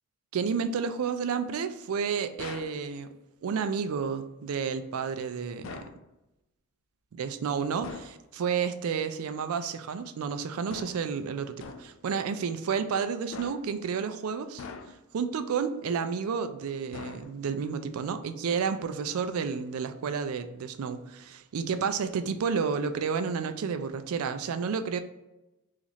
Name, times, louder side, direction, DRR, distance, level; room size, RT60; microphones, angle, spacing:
voice 1, 0.3-3.1 3.4-5.9 7.1-25.0, right 6 dB, 90° right, 9 dB, 0.4 m, -31 dB
sound 1, 2.4-2.8 5.6-6.0 7.8-8.2 10.7-11.1 11.6-12.0 13.3-13.8 14.6-15.2 16.9-17.6, left 4 dB, 65° left, 0.3 m, -43 dB
2.9 x 2.5 x 4.0 m, 0.95 s
head